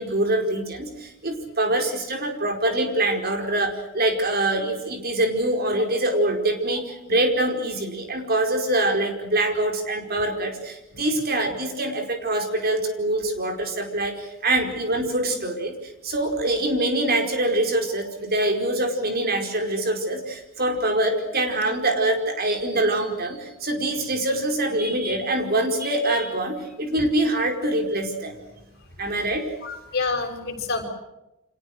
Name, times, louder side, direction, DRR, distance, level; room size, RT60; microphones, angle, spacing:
voice 1, 0.0-28.3 29.0-29.4, right 1 dB, 45° right, 5 dB, 4.9 m, -24 dB
voice 2, 29.6-30.9, left 3 dB, 50° left, 2 dB, 6.5 m, -28 dB
30.0 x 26.0 x 6.4 m, 0.95 s
head